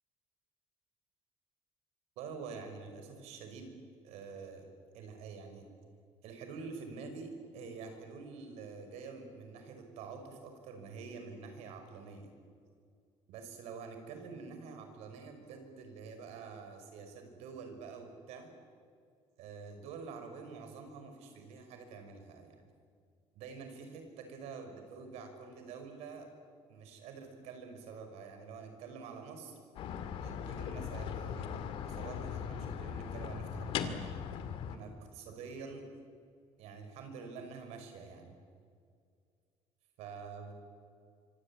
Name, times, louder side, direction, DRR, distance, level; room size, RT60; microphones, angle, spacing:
voice 1, 2.2-3.8 4.0-4.7 4.9-5.6 6.2-12.3 13.3-18.5 19.4-22.7 23.3-26.3 26.7-29.6 30.2-34.2 34.7-35.8 36.6-38.4 40.0-40.5, right 5 dB, 85° right, 6 dB, 5.7 m, -47 dB
sound 1, 29.7-34.8, left 8 dB, 60° left, 2.1 m, -39 dB
26.5 x 25.0 x 9.0 m, 2.2 s
cardioid pair, 170°, 11 cm